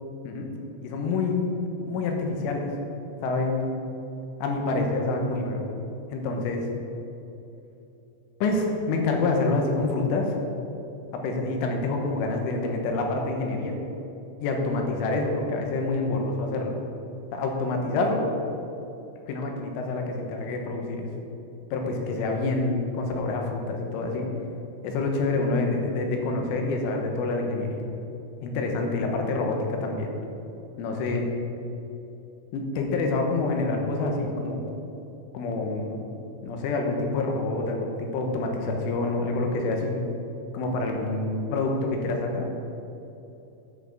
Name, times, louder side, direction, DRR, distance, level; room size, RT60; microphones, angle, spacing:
voice 1, 0.8-1.5 1.8-2.7 3.2-3.8 4.4-5.6 6.1-6.7 8.4-10.4 11.2-13.8 14.4-16.8 17.3-18.3 19.3-21.1 21.7-24.3 24.8-27.8 28.4-30.1 30.8-31.3 32.5-34.7 35.3-36.0 36.4-40.1 40.5-42.5, left 3 dB, 75° left, 2 dB, 3.6 m, -27 dB
10.0 x 6.3 x 7.3 m, 2.9 s
omnidirectional pair, 5.8 m